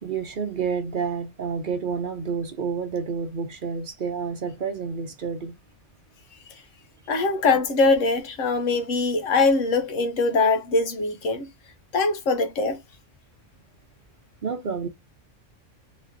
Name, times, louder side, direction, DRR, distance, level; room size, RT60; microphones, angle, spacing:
voice 1, 0.0-5.6 14.4-14.9, right 5 dB, 50° right, 0.8 m, -29 dB
voice 2, 7.1-11.5 11.9-12.8, left 3 dB, 90° left, 1.3 m, -22 dB
4.2 x 2.9 x 2.6 m
omnidirectional pair, 1.3 m